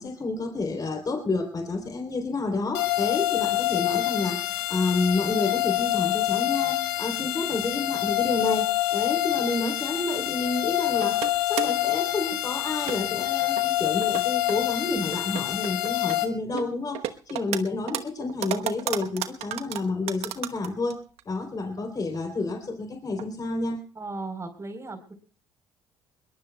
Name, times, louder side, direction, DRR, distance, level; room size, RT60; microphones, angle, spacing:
voice 1, 0.0-21.0 21.3-23.8, left 3 dB, 35° left, 5 dB, 3.5 m, -29 dB
sound 1, 2.7-16.3, left 15 dB, 85° left, 1.3 m, -26 dB
sound 2, 9.9-10.5 11.0-11.8 12.3-12.4 12.9-13.3 13.6-13.7 14.0-14.6 15.1-16.2 16.5-17.6 17.9-20.9 21.2-21.3 21.8-21.9 22.1-22.2 23.1-23.3 23.7-23.8, right 12 dB, 70° right, 1.1 m, -33 dB
voice 2, 24.0-25.1, right 3 dB, 25° right, 7 dB, 3.9 m, -36 dB
21.5 x 21.5 x 2.3 m, 0.37 s
hypercardioid pair, 60°, 11 cm